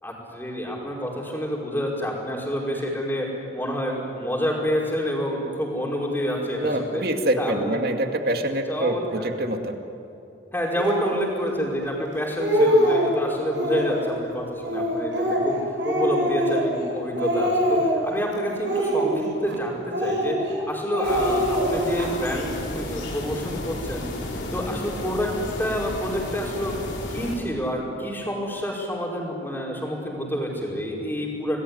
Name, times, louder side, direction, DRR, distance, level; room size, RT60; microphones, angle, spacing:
voice 1, 0.0-7.0 7.4-7.8 8.7-9.3 10.5-24.0 24.5-26.8 27.1-31.6, equal, 10° left, -2 dB, 5.2 m, -28 dB
voice 2, 6.6-9.8, right 1 dB, 55° right, 5 dB, 2.3 m, -25 dB
Speech, 10.8-11.1 11.8-11.9 12.2-13.1 13.5-14.1 14.6-16.9 17.2-18.1 18.6-19.6 19.9-20.6 20.9-22.1, equal, 75° right, 6.5 m, -23 dB
sound 1, 21.0-27.4, left 1 dB, 90° left, 5.6 m, -33 dB
27.5 x 20.0 x 9.9 m, 2.9 s
head